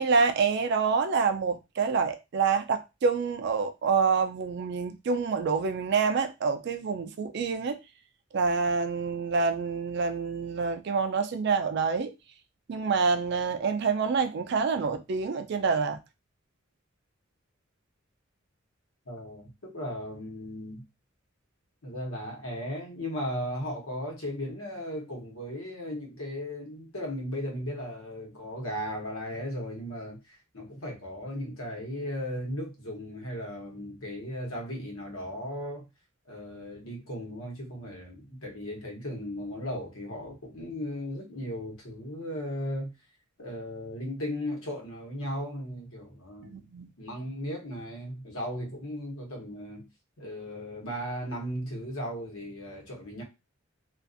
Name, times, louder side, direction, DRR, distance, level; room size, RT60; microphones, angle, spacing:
voice 1, 0.0-7.8 8.3-12.1 12.7-16.0 46.4-46.9, right 5 dB, 55° right, 0.3 m, -27 dB
voice 2, 19.0-20.8 21.8-35.9 36.2-42.9 43.4-46.6 47.0-49.9 50.2-53.2, equal, 85° left, 1.0 m, -36 dB
2.4 x 2.4 x 2.5 m
head